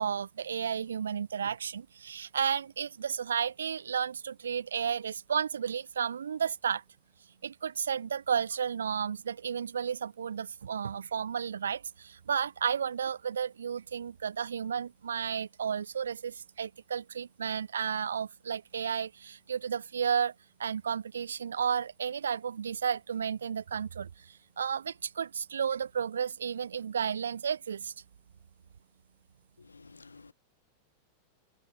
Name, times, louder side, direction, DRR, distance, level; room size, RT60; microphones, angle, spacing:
voice 1, 0.0-6.8 7.4-20.3 20.6-27.9, right 7 dB, 70° right, 0.4 m, -32 dB
voice 2, 29.6-30.3, left 4 dB, 75° left, 0.3 m, -53 dB
figure-of-eight pair, 90°, 0 cm